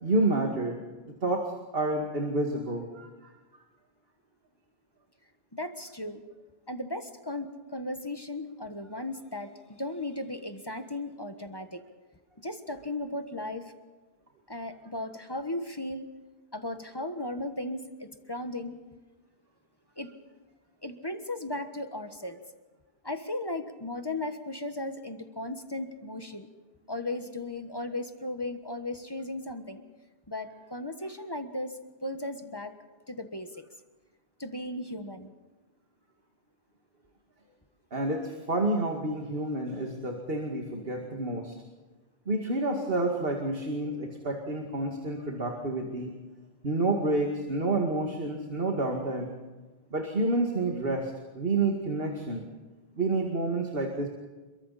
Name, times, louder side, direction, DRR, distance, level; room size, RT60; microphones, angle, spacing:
voice 1, 0.0-0.8 1.2-3.3 37.9-41.6 42.3-46.1 46.6-49.3 49.9-52.4 53.0-54.1, right 2 dB, 65° right, 1 dB, 2.5 m, -29 dB
voice 2, 5.5-6.2 6.7-9.5 9.8-11.8 12.4-13.7 14.5-16.1 16.5-18.8 20.0-20.1 20.8-22.4 23.0-26.5 26.9-29.8 30.3-32.8 33.1-33.6 34.4-35.3, left 1 dB, 25° left, 7 dB, 1.4 m, -36 dB
28.0 x 23.5 x 4.3 m, 1.3 s
omnidirectional pair, 1.0 m